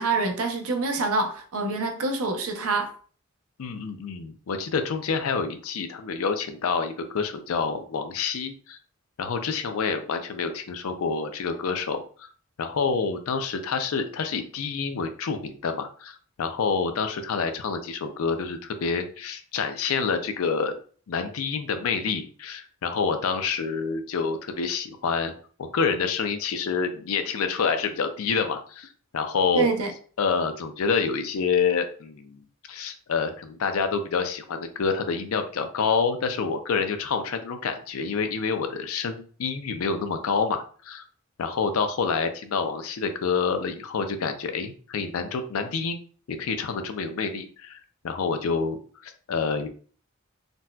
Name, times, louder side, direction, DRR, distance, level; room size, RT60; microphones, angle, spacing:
voice 1, 0.0-2.9 29.5-29.9, right 3 dB, 75° right, 0.5 m, -26 dB
voice 2, 3.6-8.8 9.2-12.3 12.6-20.7 21.1-25.3 25.6-29.7 30.2-41.0 41.4-46.0 46.3-47.8 48.0-49.7, left 5 dB, 75° left, 0.4 m, -27 dB
3.9 x 2.2 x 2.2 m
head